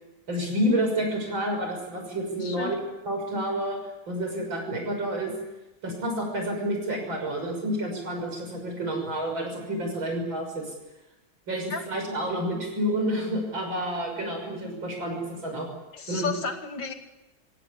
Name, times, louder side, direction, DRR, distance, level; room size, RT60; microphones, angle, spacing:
voice 1, 0.3-2.8 3.1-3.8 4.1-5.3 5.8-10.7 11.5-15.7 16.1-16.3, equal, 70° right, 3 dB, 7.0 m, -29 dB
voice 2, 2.4-2.7 11.7-11.8 15.9-16.9, left 4 dB, 65° left, 6 dB, 2.9 m, -32 dB
25.0 x 16.5 x 9.9 m, 1.0 s
omnidirectional pair, 2.2 m